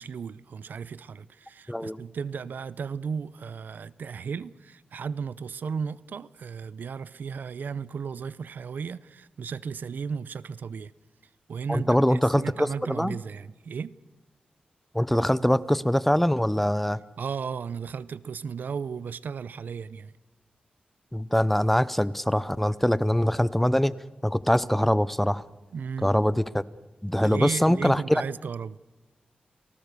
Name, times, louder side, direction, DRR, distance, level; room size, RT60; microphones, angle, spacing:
voice 1, 0.0-10.9 11.5-13.9 17.2-20.1 25.7-26.1 27.2-28.8, right 6 dB, 80° right, 0.7 m, -35 dB
voice 2, 1.7-2.0 11.7-13.2 14.9-17.0 21.1-23.9 24.2-25.4 26.0-26.6 27.0-28.0, equal, 5° left, 0.7 m, -23 dB
29.5 x 18.5 x 6.8 m
wide cardioid pair, 95°, 3 cm